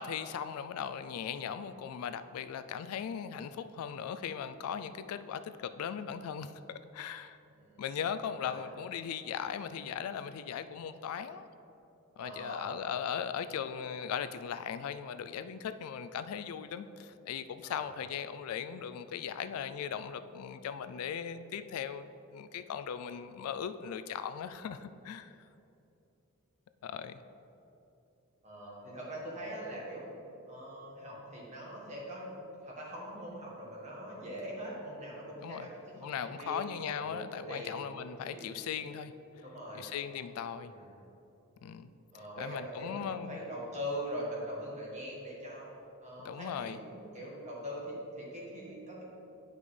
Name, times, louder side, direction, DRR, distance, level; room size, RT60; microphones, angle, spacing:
voice 1, 0.0-6.5 6.9-7.4 7.8-11.4 12.2-22.1 22.3-25.3 26.8-27.2 35.4-35.7 36.0-39.1 39.7-40.7 41.6-41.9 42.4-43.4 46.2-46.8, left 8 dB, 75° left, 12 dB, 0.3 m, -38 dB
voice 2, 12.2-12.8 17.6-18.0 28.4-30.1 30.5-35.8 36.2-36.6 37.0-37.2 37.5-37.8 38.3-38.5 39.4-39.9 40.6-41.0 42.1-45.7 46.0-49.0, equal, 30° right, -4 dB, 1.6 m, -42 dB
9.9 x 5.2 x 3.3 m, 2.9 s
head